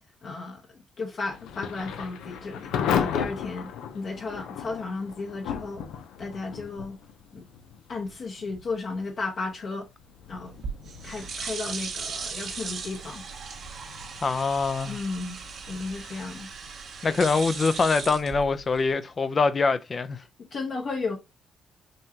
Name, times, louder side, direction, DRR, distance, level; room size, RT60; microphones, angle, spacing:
voice 1, 0.2-5.8 6.2-7.0 7.3-7.4 7.9-9.9 10.3-10.5 11.0-13.2 14.8-15.4 15.7-16.5 20.4-21.2, left 3 dB, 55° left, 1.0 m, -34 dB
Thunder / Rain, 1.3-18.0, left 8 dB, 90° left, 0.5 m, -36 dB
sound 1, 10.5-18.9, right 5 dB, 65° right, 1.4 m, -37 dB
voice 2, 14.2-15.0 17.0-20.2, left 4 dB, 35° left, 0.5 m, -24 dB
5.3 x 2.9 x 2.8 m
cardioid pair, 90°, 0 cm